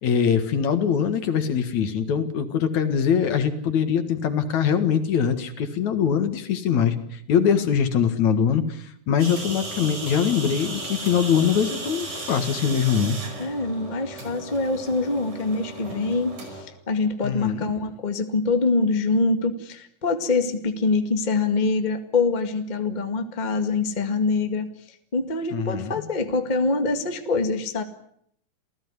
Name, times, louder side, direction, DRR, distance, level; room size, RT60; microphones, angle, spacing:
voice 1, 0.0-13.2 17.2-17.7 25.5-26.0, left 7 dB, 65° left, 9 dB, 3.1 m, -23 dB
sound 1, 9.2-16.6, right 2 dB, 70° right, 6.8 m, -35 dB
voice 2, 13.4-24.7 25.1-27.8, left 3 dB, 20° left, 7 dB, 1.6 m, -24 dB
28.0 x 16.5 x 9.7 m, 0.69 s
omnidirectional pair, 3.5 m